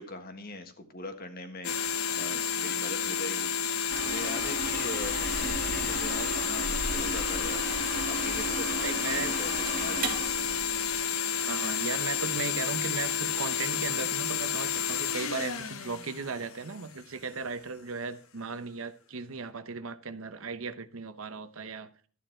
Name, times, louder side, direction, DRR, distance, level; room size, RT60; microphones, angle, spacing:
voice 1, 0.0-3.5 4.0-7.7 8.0-10.2, left 2 dB, 45° left, 1.5 m, -41 dB
sound 1, 1.6-16.9, left 7 dB, 75° left, 0.9 m, -31 dB
sound 2, 3.9-11.0, right 2 dB, 40° right, 1.9 m, -36 dB
voice 2, 5.9-6.5 8.8-9.3 11.3-21.9, right 4 dB, 70° right, 0.9 m, -37 dB
12.5 x 9.0 x 4.4 m
head